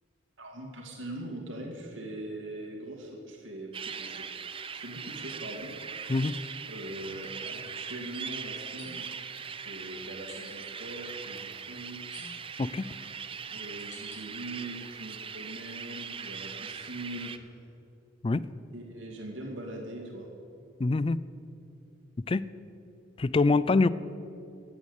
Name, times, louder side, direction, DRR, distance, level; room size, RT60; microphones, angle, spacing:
voice 1, 0.4-4.3 4.7-5.7 6.3-6.4 6.7-9.1 9.4-12.1 13.5-17.3 18.7-20.3, right 1 dB, 80° right, 1 dB, 2.4 m, -41 dB
sound 1, 3.7-17.4, right 6 dB, 25° right, 0.6 m, -40 dB
sound 2, 4.3-4.5 7.1-7.3 8.8-9.2 10.3-10.6 12.1-12.7 13.3-14.2 14.8-15.4 15.9-17.9, left 3 dB, 60° left, 4.5 m, -54 dB
voice 2, 20.8-21.2 22.3-22.4 23.2-23.9, left 3 dB, 25° left, 17 dB, 0.4 m, -24 dB
15.5 x 8.5 x 8.2 m, 2.7 s
head